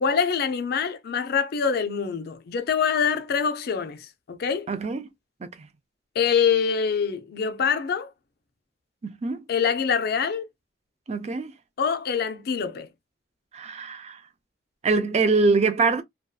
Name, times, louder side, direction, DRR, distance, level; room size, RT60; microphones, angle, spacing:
voice 1, 0.0-4.7 6.2-8.1 9.5-10.5 11.8-12.9, left 6 dB, 60° left, 0.4 m, -25 dB
voice 2, 4.7-5.1 5.4-5.7 9.0-9.4 11.1-11.5 13.5-14.2 14.8-16.0, right 4 dB, 40° right, 0.4 m, -24 dB
2.6 x 2.3 x 2.3 m
head